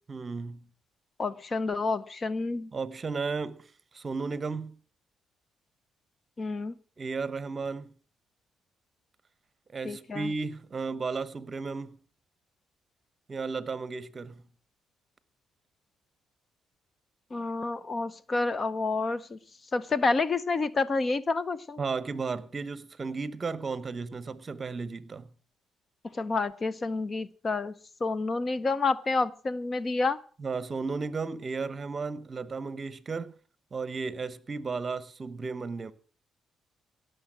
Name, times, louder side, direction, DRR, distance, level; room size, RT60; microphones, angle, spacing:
voice 1, 0.1-0.7 2.7-3.7 3.9-4.7 7.0-7.9 9.7-12.0 13.3-14.4 21.8-25.3 30.4-33.3 33.7-35.9, right 4 dB, 35° right, 1.0 m, -34 dB
voice 2, 1.2-2.7 6.4-6.8 9.8-10.3 17.3-19.4 19.7-21.8 26.0-27.7 28.0-30.2, left 3 dB, 35° left, 0.8 m, -29 dB
17.5 x 6.9 x 7.5 m
cardioid pair, 90°, 0 cm